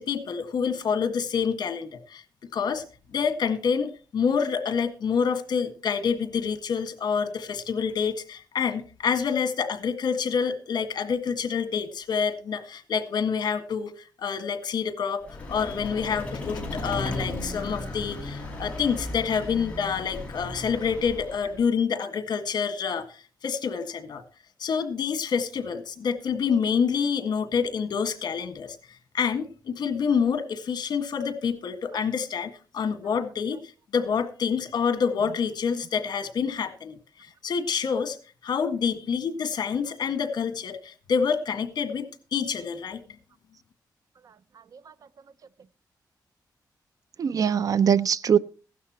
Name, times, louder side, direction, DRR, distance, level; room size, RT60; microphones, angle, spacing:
voice 1, 0.0-2.8 3.1-24.2 24.6-28.8 29.1-33.6 33.9-37.0 37.4-38.2 38.4-43.0, left 6 dB, 75° left, 1.7 m, -27 dB
Vehicle, 15.2-21.7, left 2 dB, 15° left, 4.3 m, -35 dB
voice 2, 47.2-48.4, right 8 dB, 55° right, 0.5 m, -22 dB
16.0 x 12.0 x 3.0 m
wide cardioid pair, 155°, 7 cm